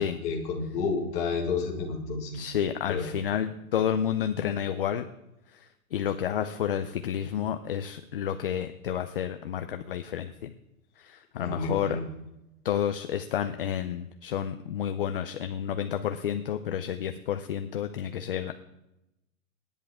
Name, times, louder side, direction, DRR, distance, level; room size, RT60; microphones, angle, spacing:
voice 1, 0.0-2.4 2.9-3.0 11.3-12.0, left 4 dB, 15° left, 0 dB, 1.8 m, -30 dB
voice 2, 2.3-5.0 5.9-10.5 11.0-12.0 12.6-18.5, left 9 dB, 40° left, 8 dB, 0.6 m, -30 dB
25.5 x 10.5 x 3.6 m, 0.91 s
hypercardioid pair, 180°, 42 cm